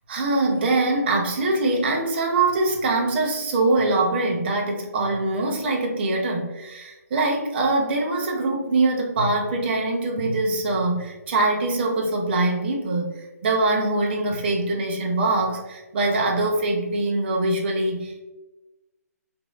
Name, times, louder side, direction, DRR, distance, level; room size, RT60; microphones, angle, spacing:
voice 1, 0.1-18.2, right 2 dB, 40° right, 1 dB, 0.6 m, -23 dB
3.0 x 2.6 x 2.4 m, 1.1 s
hypercardioid pair, 150°, 9 cm